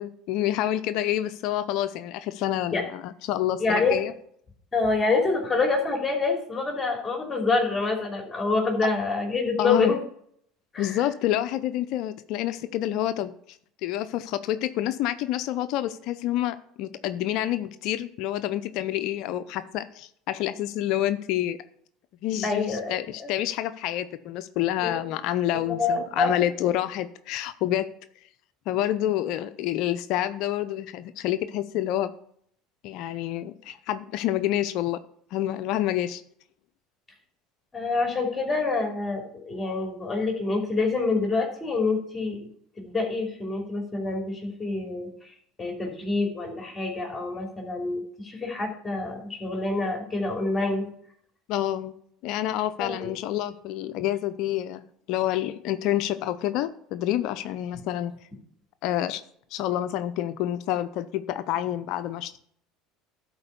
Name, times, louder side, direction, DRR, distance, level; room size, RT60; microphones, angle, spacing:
voice 1, 0.0-4.1 9.6-9.9 10.8-13.3 13.8-21.6 22.2-27.9 28.7-32.1 32.8-35.0 35.3-36.2 51.5-51.9 52.2-58.1 58.8-59.2 59.5-62.5, left 12 dB, 65° left, 11 dB, 0.6 m, -28 dB
voice 2, 3.6-4.0 4.7-10.0 10.7-11.0 22.4-23.3 24.8-25.1 25.5-26.5 37.7-42.4 42.8-45.1 45.6-50.9 52.8-53.1, left 3 dB, 20° left, 1 dB, 3.0 m, -27 dB
12.0 x 4.5 x 6.9 m, 0.66 s
hypercardioid pair, 80°, 0 cm